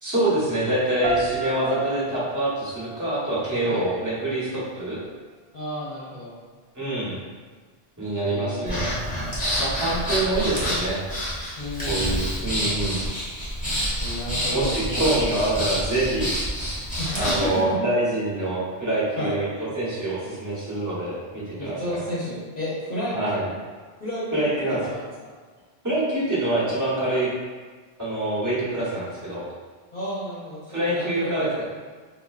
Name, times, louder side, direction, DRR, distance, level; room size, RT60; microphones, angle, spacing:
voice 1, 0.0-5.0 6.7-7.1 8.0-8.9 9.6-11.0 11.9-13.0 14.5-16.8 17.2-21.8 23.1-23.4 24.3-24.8 25.8-27.3 28.0-29.4 30.7-31.5, right 1 dB, 20° right, -9 dB, 0.9 m, -25 dB
sound 1, 1.0-4.0, right 2 dB, 60° right, 0.7 m, -32 dB
voice 2, 3.7-4.0 5.5-6.3 8.2-8.9 11.6-12.3 14.0-15.1 17.0-17.8 19.2-19.3 21.6-23.5 24.0-25.1 29.9-31.5, left 1 dB, 55° left, -9 dB, 0.7 m, -32 dB
Breathing, 8.7-17.5, equal, 10° left, 0.6 m, -28 dB
3.8 x 2.1 x 2.3 m, 1.5 s
omnidirectional pair, 1.1 m